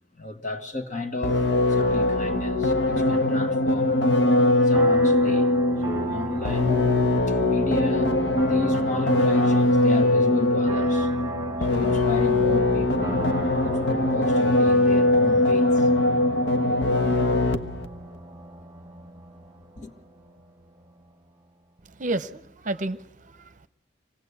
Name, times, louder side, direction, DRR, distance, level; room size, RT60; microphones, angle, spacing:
voice 1, 0.2-1.4 1.7-4.0 4.6-5.5 5.8-8.1 8.4-11.1 11.6-13.4 13.6-15.9 19.8-19.9, left 2 dB, 40° left, 1.9 m, -32 dB
sound 1, 1.2-17.9, left 2 dB, 65° left, 1.2 m, -21 dB
sound 2, 4.7-21.2, right 2 dB, 20° right, 1.4 m, -37 dB
voice 2, 21.8-23.7, right 2 dB, 40° right, 0.8 m, -31 dB
25.5 x 18.0 x 8.3 m
head